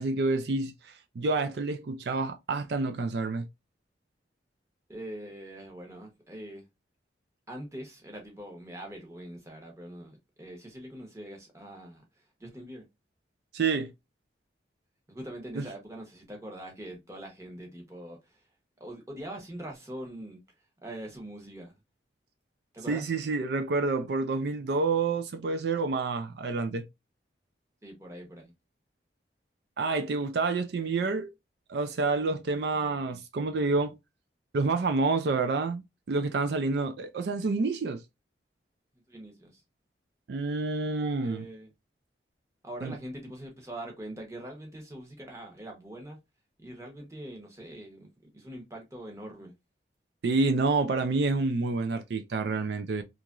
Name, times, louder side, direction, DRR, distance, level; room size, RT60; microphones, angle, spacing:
voice 1, 0.0-3.5 13.5-13.9 15.6-15.7 22.9-26.8 29.8-31.3 31.7-34.0 34.5-38.0 40.3-41.4 42.8-43.0 50.2-53.0, right 3 dB, 70° right, 0.4 m, -28 dB
voice 2, 4.9-6.7 7.5-12.8 15.1-18.4 18.8-20.4 20.8-21.7 22.7-23.1 27.8-28.5 39.1-39.6 41.2-41.7 42.6-46.2 46.6-48.1 48.3-49.5, right 1 dB, 15° right, 0.9 m, -43 dB
2.9 x 2.4 x 2.3 m
head